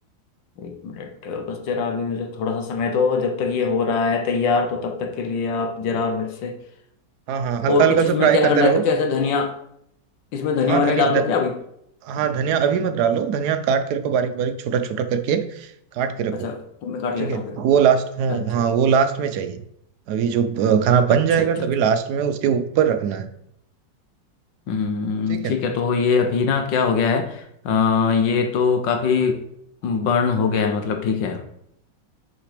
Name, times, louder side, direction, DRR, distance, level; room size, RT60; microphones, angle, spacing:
voice 1, 0.6-6.6 7.6-9.5 10.3-11.5 16.3-17.6 18.3-18.6 24.7-29.4 29.8-31.5, left 5 dB, 85° left, 5 dB, 1.6 m, -22 dB
voice 2, 7.3-8.8 10.7-11.3 12.0-15.7 15.9-16.5 17.2-19.6 20.1-23.3 25.3-25.5, right 7 dB, 70° right, 9 dB, 1.1 m, -21 dB
6.1 x 5.0 x 5.0 m, 0.73 s
omnidirectional pair, 1.9 m